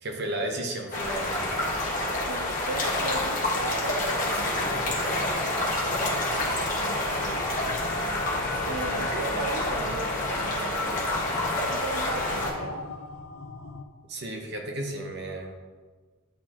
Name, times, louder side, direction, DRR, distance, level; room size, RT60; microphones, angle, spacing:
voice 1, 0.0-1.4 14.1-15.6, right 1 dB, 50° right, 2 dB, 0.8 m, -33 dB
sound 1, 0.9-12.5, left 1 dB, 40° left, 1.4 m, -28 dB
voice 2, 2.3-7.5 8.6-11.3 11.6-12.9, right 3 dB, 85° right, 7 dB, 0.5 m, -37 dB
sound 2, 4.3-13.8, left 3 dB, 85° left, 0.6 m, -38 dB
10.0 x 4.1 x 3.0 m, 1.4 s
head